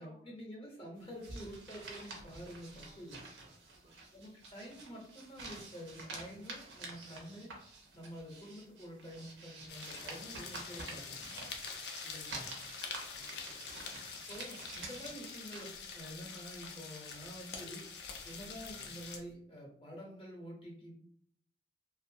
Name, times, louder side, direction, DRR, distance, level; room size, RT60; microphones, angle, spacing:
voice 1, 0.0-3.2 4.1-7.5 7.9-11.2 12.0-12.5 14.3-17.8 18.2-21.0, equal, 30° left, -3 dB, 0.7 m, -48 dB
sound 1, 1.0-16.9 17.1-19.3, right 3 dB, 80° right, 0.7 m, -50 dB
voice 2, 2.8-4.0 13.0-13.7, equal, 30° right, 2 dB, 0.4 m, -63 dB
sound 2, 9.7-19.2, left 5 dB, 65° left, 0.4 m, -46 dB
2.6 x 2.4 x 2.6 m, 0.63 s
head